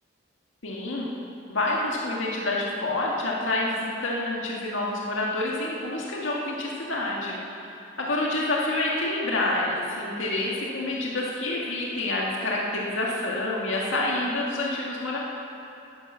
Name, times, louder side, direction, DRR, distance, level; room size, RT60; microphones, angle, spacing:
voice 1, 0.6-1.1 1.5-7.7 8.0-15.2, left 2 dB, 80° left, -3 dB, 1.8 m, -28 dB
12.5 x 10.5 x 6.8 m, 2.8 s
head